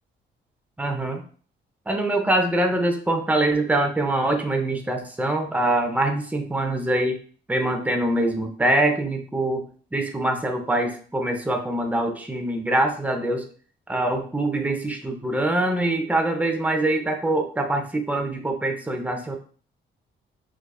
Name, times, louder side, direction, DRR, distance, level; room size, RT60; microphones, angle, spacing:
voice 1, 0.8-1.2 1.9-7.2 7.5-9.6 9.9-13.4 13.9-19.4, right 1 dB, 10° right, 3 dB, 0.6 m, -24 dB
4.8 x 2.3 x 2.3 m, 0.43 s
cardioid pair, 90°, 20 cm